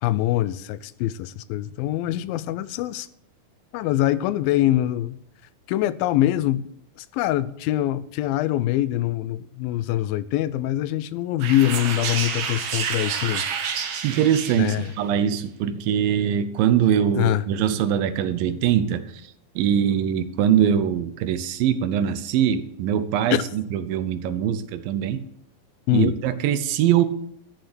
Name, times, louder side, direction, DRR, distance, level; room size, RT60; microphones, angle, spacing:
voice 1, 0.0-3.1 3.7-5.2 5.7-6.7 7.0-13.5 14.6-14.9 17.2-17.4 23.3-23.4 25.9-26.2, left 14 dB, 85° left, 2.4 m, -24 dB
sound 1, 11.4-15.0, right 6 dB, 60° right, 2.2 m, -29 dB
voice 2, 14.0-19.1 19.6-25.2 25.9-27.1, right 9 dB, 80° right, 2.5 m, -22 dB
13.0 x 6.6 x 7.9 m
omnidirectional pair, 4.1 m